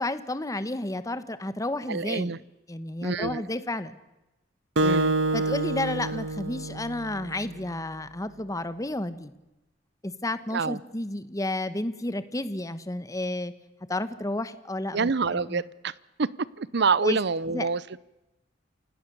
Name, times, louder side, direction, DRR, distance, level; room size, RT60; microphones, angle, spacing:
voice 1, 0.0-2.3 2.7-4.0 5.3-9.3 10.0-13.5 13.9-15.6 17.0-17.2 17.5-17.7, left 1 dB, 20° left, 13 dB, 1.1 m, -31 dB
voice 2, 1.9-2.4 3.0-3.4 4.8-5.1 10.5-10.8 14.9-15.9 16.2-16.3 16.6-17.8, right 4 dB, 60° right, 20 dB, 0.7 m, -26 dB
Acoustic guitar, 4.8-7.5, right 2 dB, 80° right, 1.4 m, -27 dB
28.0 x 17.5 x 6.9 m, 0.99 s
head